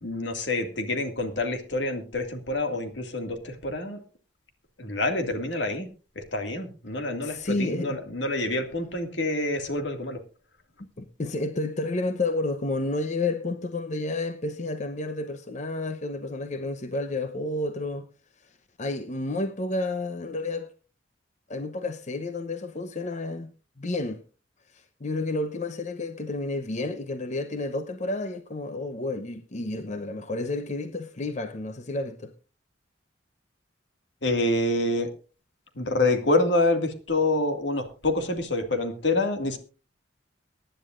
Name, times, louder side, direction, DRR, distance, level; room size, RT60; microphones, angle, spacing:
voice 1, 0.0-4.0 4.8-5.9 6.2-10.2 34.2-35.1 35.8-39.6, left 2 dB, 75° left, 2.1 m, -27 dB
voice 2, 7.2-8.0 11.0-18.1 18.8-20.7 21.5-23.5 23.8-24.2 24.7-32.3, left 2 dB, 40° left, 0.8 m, -30 dB
23.5 x 10.0 x 2.5 m
head